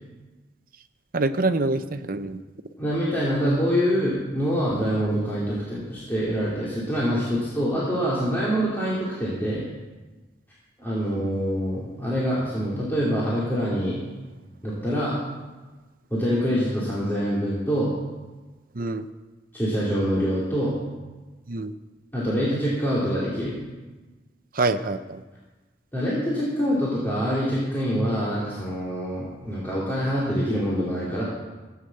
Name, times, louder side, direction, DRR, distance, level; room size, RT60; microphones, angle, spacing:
voice 1, 1.1-2.4 18.8-19.1 21.5-21.7 24.6-25.2, right 3 dB, 50° right, 11 dB, 0.7 m, -25 dB
voice 2, 2.8-9.7 10.8-14.0 14.6-15.2 16.1-17.9 19.5-20.8 22.1-23.6 25.9-31.2, equal, 10° left, -8 dB, 2.7 m, -25 dB
15.0 x 8.1 x 7.7 m, 1.2 s
head